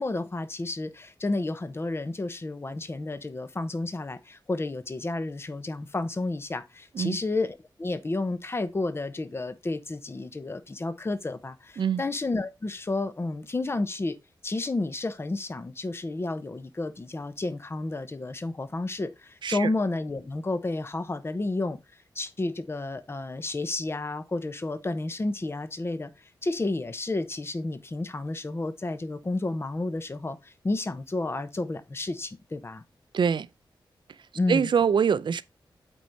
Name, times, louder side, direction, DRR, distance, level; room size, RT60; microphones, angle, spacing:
voice 1, 0.0-14.2 14.4-21.8 22.1-26.1 26.4-32.8 34.3-34.7, left 2 dB, 30° left, 0.9 m, -31 dB
voice 2, 33.1-33.5 34.5-35.4, right 7 dB, 65° right, 0.5 m, -24 dB
8.3 x 4.6 x 4.0 m
wide cardioid pair, 90°, 9 cm